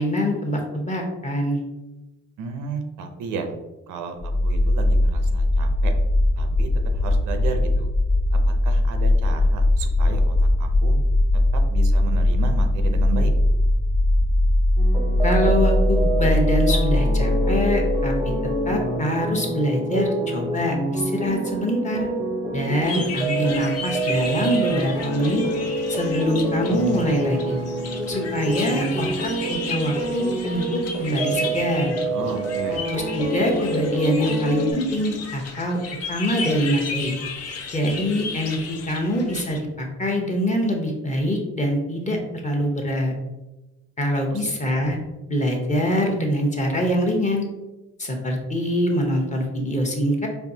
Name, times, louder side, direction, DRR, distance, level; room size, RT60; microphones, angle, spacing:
voice 1, 0.0-1.6 15.2-18.3 18.7-22.1 22.5-25.4 25.9-27.6 28.1-32.0 32.9-35.8 36.1-37.2 37.7-42.2 42.4-43.1 44.0-45.0 45.3-47.5 48.0-50.3, equal, 25° left, 1 dB, 0.9 m, -24 dB
voice 2, 2.4-3.5 3.9-5.9 6.4-6.7 7.0-7.9 8.5-11.0 11.5-13.3 32.1-32.9 44.3-44.4, right 5 dB, 85° right, 6 dB, 0.6 m, -33 dB
sound 1, 4.2-19.0, left 1 dB, 85° left, 0.8 m, -20 dB
sound 2, 14.8-34.7, right 2 dB, 10° right, 0.6 m, -27 dB
sound 3, 22.8-39.6, left 5 dB, 55° left, 0.6 m, -34 dB
4.4 x 2.6 x 2.7 m, 1.0 s
cardioid pair, 90°, 30 cm